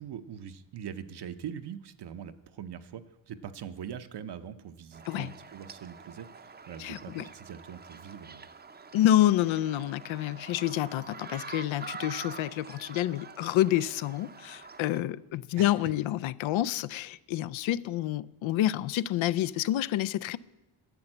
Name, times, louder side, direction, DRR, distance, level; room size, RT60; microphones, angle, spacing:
voice 1, 0.0-8.5 15.6-15.7, right 8 dB, 55° right, 0.7 m, -42 dB
sound 1, 4.9-15.0, right 5 dB, 20° right, 0.6 m, -46 dB
voice 2, 6.8-7.3 8.9-20.4, left 13 dB, 75° left, 0.5 m, -28 dB
10.5 x 7.1 x 8.7 m
cardioid pair, 110°, 48 cm